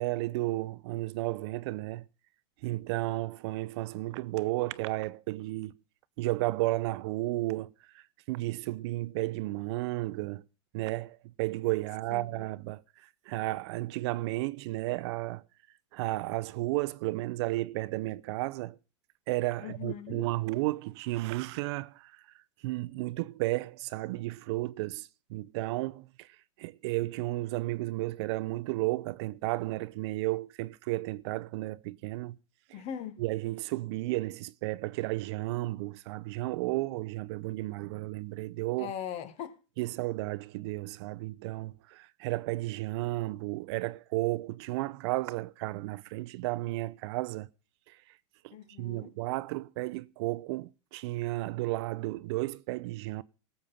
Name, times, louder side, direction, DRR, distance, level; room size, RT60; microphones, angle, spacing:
voice 1, 0.0-2.0 2.6-5.7 6.2-10.4 10.7-15.4 15.9-18.8 19.3-22.2 22.6-26.3 26.6-32.4 32.7-32.8 33.2-38.9 39.8-47.5 47.9-48.0 48.4-53.2, right 19 dB, 60° right, 0.7 m, -33 dB
voice 2, 12.1-12.4 19.6-20.3 32.7-33.2 38.8-39.6 48.5-49.1, left 9 dB, 45° left, 1.6 m, -40 dB
18.0 x 7.3 x 5.5 m
hypercardioid pair, 120°, 16 cm